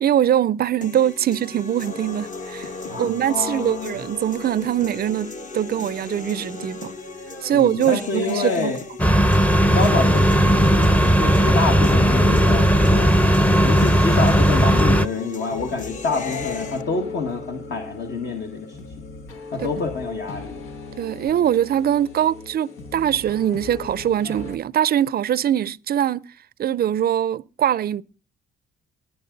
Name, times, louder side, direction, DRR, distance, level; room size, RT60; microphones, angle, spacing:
voice 1, 0.0-2.7 3.0-6.9 7.4-8.8 21.0-26.3 26.6-28.0, right 10 dB, 50° right, 0.5 m, -22 dB
sound 1, 0.8-16.8, left 4 dB, 40° left, 1.2 m, -35 dB
voice 2, 2.9-4.0 7.5-8.8 9.7-13.1 13.6-19.1 19.5-20.6, left 4 dB, 60° left, 1.8 m, -27 dB
sound 2, 9.0-15.1, equal, 5° left, 0.7 m, -16 dB
sound 3, 15.5-24.6, left 3 dB, 85° left, 1.6 m, -37 dB
20.5 x 7.3 x 3.9 m
cardioid pair, 90°, 20 cm